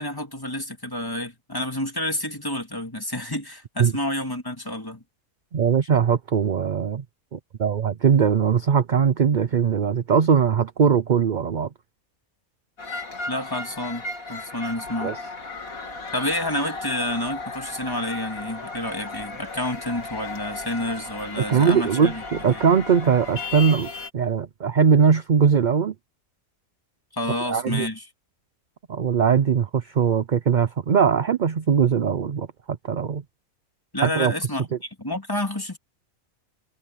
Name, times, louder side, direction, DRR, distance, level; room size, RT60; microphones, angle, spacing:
voice 1, 0.0-5.0 13.3-14.0 14.3-15.1 16.1-22.6 27.1-28.1 33.9-35.8, left 1 dB, 15° left, 2.2 m, -29 dB
voice 2, 5.5-7.0 7.3-11.7 15.0-15.2 21.5-25.9 27.5-27.9 28.9-33.2 34.0-34.3, right 7 dB, 45° right, 0.6 m, -20 dB
sound 1, 12.8-24.1, left 3 dB, 80° left, 3.6 m, -35 dB
omnidirectional pair, 1.5 m